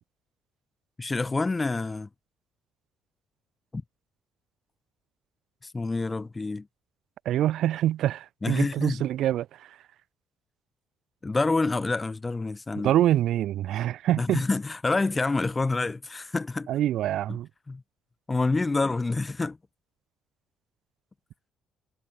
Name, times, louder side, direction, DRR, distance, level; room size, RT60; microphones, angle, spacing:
voice 1, 1.0-2.1 3.7-3.8 5.6-6.7 8.4-9.0 11.2-12.9 14.2-16.7 17.3-17.4 17.7-17.8 18.3-19.6, left 3 dB, 25° left, 6.9 m, -27 dB
voice 2, 7.2-9.8 12.8-14.4 16.7-17.5, right 12 dB, 70° right, 2.8 m, -25 dB
supercardioid pair, 70°, 0 cm